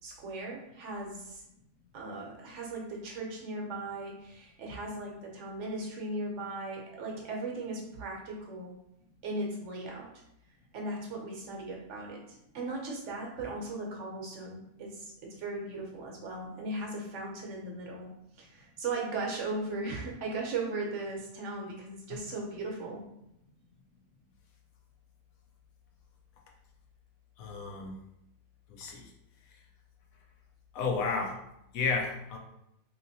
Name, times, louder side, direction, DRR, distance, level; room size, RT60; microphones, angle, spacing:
voice 1, 0.0-1.4 1.9-8.7 9.2-10.1 10.7-12.2 12.5-18.1 18.4-23.0, right 2 dB, 65° right, -1 dB, 1.0 m, -37 dB
voice 2, 27.4-28.0 28.7-29.1 30.7-31.4 31.7-32.4, left 4 dB, 85° left, 1 dB, 1.1 m, -32 dB
2.9 x 2.8 x 2.6 m, 0.82 s
omnidirectional pair, 1.4 m